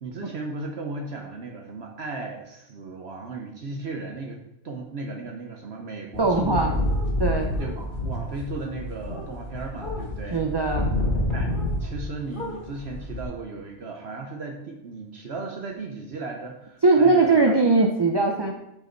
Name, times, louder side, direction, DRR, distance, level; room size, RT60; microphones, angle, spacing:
voice 1, 0.0-6.8 7.6-10.5 11.3-11.5 11.8-17.6, right 3 dB, 60° right, 1 dB, 1.1 m, -36 dB
sound 1, 6.1-12.1 12.3-13.2, left 1 dB, 45° left, 1.5 m, -28 dB
voice 2, 6.2-6.7 7.2-7.5 10.3-10.9 16.8-18.5, right 3 dB, 35° right, 2 dB, 0.4 m, -20 dB
7.4 x 5.1 x 4.5 m, 0.84 s
omnidirectional pair, 1.3 m